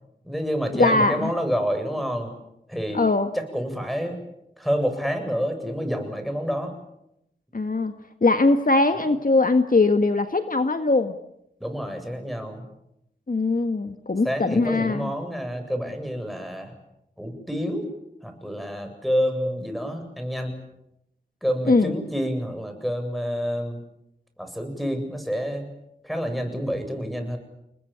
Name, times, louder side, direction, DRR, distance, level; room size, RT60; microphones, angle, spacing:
voice 1, 0.2-2.3 2.7-3.0 3.3-4.2 4.6-6.7 11.6-12.6 14.2-16.7 17.2-17.9 18.2-20.6 21.4-23.8 24.4-25.7 26.0-27.4, equal, ahead, 6 dB, 7.8 m, -28 dB
voice 2, 0.8-1.3 2.9-3.3 7.5-7.9 8.2-11.1 13.3-15.1 21.7-21.9, left 3 dB, 45° left, 7 dB, 1.7 m, -21 dB
30.0 x 20.5 x 8.8 m, 0.82 s
wide cardioid pair, 65°, 19 cm